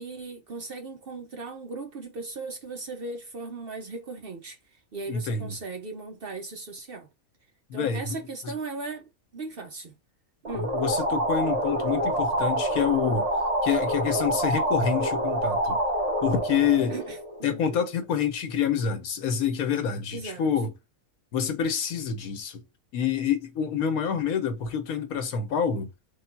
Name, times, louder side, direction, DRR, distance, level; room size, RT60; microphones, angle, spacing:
voice 1, 0.0-4.6 4.9-7.1 7.7-9.9 10.4-10.7 16.9-17.8 20.1-20.5, right 3 dB, 55° right, 0.7 m, -37 dB
voice 2, 5.1-5.5 7.7-8.2 10.5-13.3 13.6-15.8 16.2-16.9 17.4-20.7 21.3-22.6 22.9-25.9, left 7 dB, 85° left, 1.3 m, -27 dB
sound 1, 10.4-17.8, right 1 dB, 30° right, 1.1 m, -27 dB
3.6 x 2.3 x 4.4 m
omnidirectional pair, 1.5 m